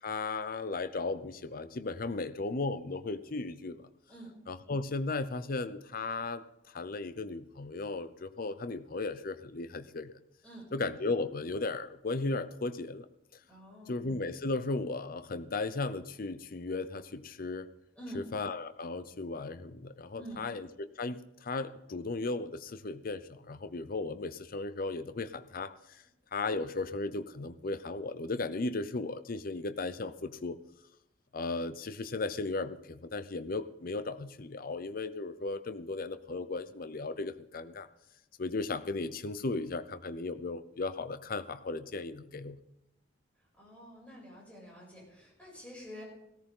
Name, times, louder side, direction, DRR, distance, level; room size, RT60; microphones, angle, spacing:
voice 1, 0.0-3.9 4.5-10.1 10.7-13.1 13.9-17.7 18.1-26.0 26.3-30.6 31.3-37.9 38.4-42.6, left 3 dB, 50° left, 12 dB, 0.7 m, -36 dB
voice 2, 13.5-14.0 18.0-18.2 20.2-20.4 43.6-46.0, equal, 5° left, -4 dB, 7.0 m, -47 dB
17.0 x 14.0 x 3.8 m, 0.85 s
head